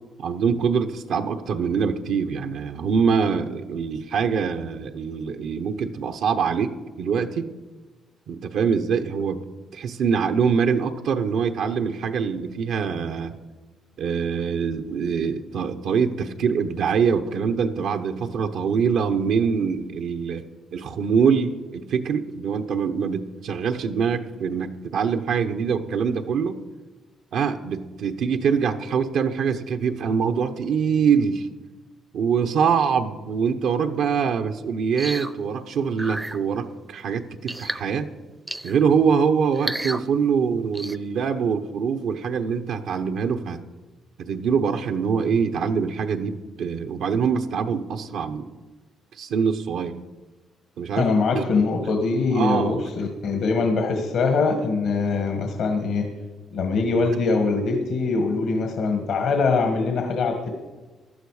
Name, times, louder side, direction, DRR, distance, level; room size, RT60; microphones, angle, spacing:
voice 1, 0.2-7.5 8.3-9.4 9.7-13.4 14.0-20.4 20.7-26.6 27.3-31.5 32.1-38.1 38.6-43.6 44.2-48.5 49.1-50.0 50.8-51.4 52.3-52.8, right 6 dB, 75° right, 6 dB, 0.9 m, -24 dB
sound 1, 35.0-35.3 36.0-36.4 37.5-37.8 38.5-38.8 39.5-40.0 40.7-41.0, right 1 dB, 10° right, 0.6 m, -31 dB
voice 2, 51.0-56.1 56.5-60.5, left 4 dB, 75° left, 4 dB, 1.6 m, -23 dB
15.5 x 11.5 x 4.9 m, 1.3 s
cardioid pair, 90°, 0 cm